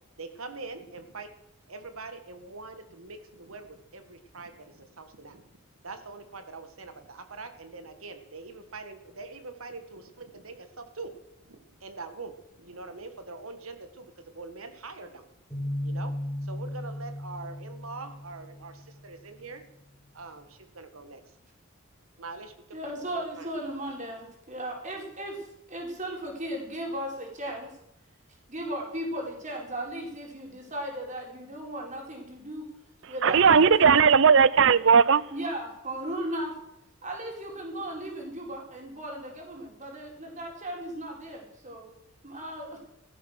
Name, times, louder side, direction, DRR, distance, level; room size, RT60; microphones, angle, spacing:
voice 1, 0.2-1.3 1.7-11.2 11.4-15.3 15.8-16.1 16.4-19.6 20.1-21.2 22.2-22.5 23.0-23.5, right 3 dB, 80° right, 1.7 m, -43 dB
sound 1, 15.5-19.2, left 1 dB, 10° left, 4.9 m, -36 dB
voice 2, 22.7-27.7 28.5-32.6 33.1-34.1 35.3-36.5 37.0-41.8 42.2-42.8, right 1 dB, 35° right, 4.6 m, -36 dB
voice 3, 33.2-35.2, right 6 dB, 60° right, 0.6 m, -18 dB
15.5 x 13.5 x 6.6 m
head